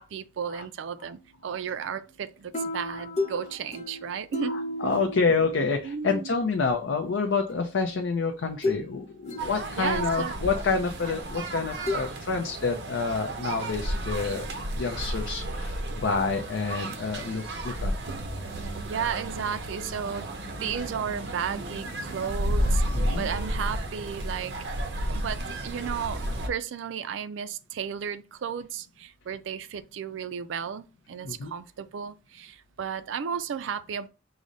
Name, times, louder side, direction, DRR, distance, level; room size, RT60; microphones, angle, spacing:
voice 1, 0.0-4.5 4.8-4.9 5.8-6.3 9.8-10.3 18.8-20.3 20.6-22.8 23.2-24.6 25.1-34.1, right 7 dB, 75° right, 0.4 m, -34 dB
sound 1, 2.5-6.1 7.5-7.6 8.6-8.9 9.3-10.1 11.9-12.0, left 2 dB, 35° left, 0.7 m, -33 dB
voice 2, 4.4-14.5 14.8-17.9 22.9-23.3 31.2-31.5, left 4 dB, 75° left, 0.5 m, -28 dB
sound 2, 9.4-26.5, right 1 dB, 55° right, 0.8 m, -32 dB
4.9 x 2.1 x 3.9 m
head